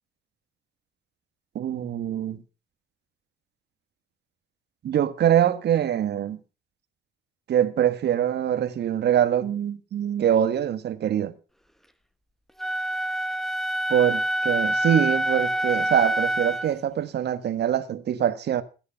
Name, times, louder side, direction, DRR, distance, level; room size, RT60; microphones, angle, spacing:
voice 1, 1.5-2.4 4.8-6.4 7.5-11.3 13.9-18.6, right 10 dB, 55° right, 1.5 m, -24 dB
Wind instrument woodwind instrument, 12.6-16.7, right 1 dB, ahead, 1.0 m, -26 dB
16.0 x 9.8 x 5.7 m
cardioid pair, 110°, 20 cm